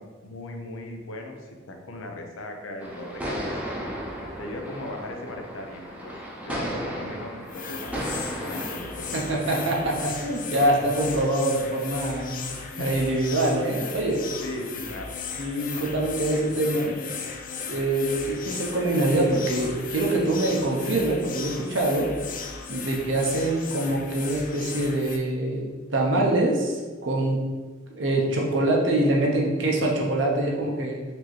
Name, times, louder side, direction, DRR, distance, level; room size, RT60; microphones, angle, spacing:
voice 1, 0.0-3.7 4.4-6.1 6.5-8.1 8.4-9.6 12.5-13.2 14.4-15.1, left 1 dB, 90° left, 3 dB, 0.6 m, -38 dB
sound 1, 2.8-10.0, equal, 5° right, 0.5 m, -35 dB
sound 2, 7.5-25.2, left 5 dB, 45° left, 0.4 m, -36 dB
voice 2, 9.1-12.4 12.8-14.3 15.4-16.9 17.7-22.1 22.7-25.7 25.9-27.4 27.9-31.0, right 1 dB, 65° right, -1 dB, 0.6 m, -24 dB
4.3 x 2.7 x 3.1 m, 1.4 s
head